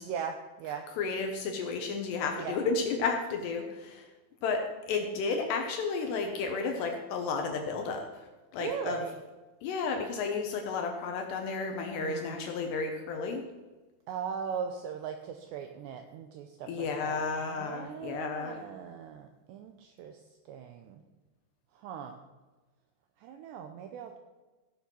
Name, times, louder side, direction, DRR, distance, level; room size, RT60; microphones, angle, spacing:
voice 1, 0.0-0.9 2.4-2.6 8.6-9.2 12.0-12.5 14.1-20.2 20.5-21.0 21.7-22.2 23.2-24.2, right 7 dB, 80° right, 6 dB, 2.5 m, -39 dB
voice 2, 1.0-4.1 4.4-9.0 9.6-13.4 16.7-18.6, left 4 dB, 70° left, 4 dB, 2.8 m, -32 dB
16.0 x 7.3 x 6.1 m, 1.2 s
omnidirectional pair, 5.8 m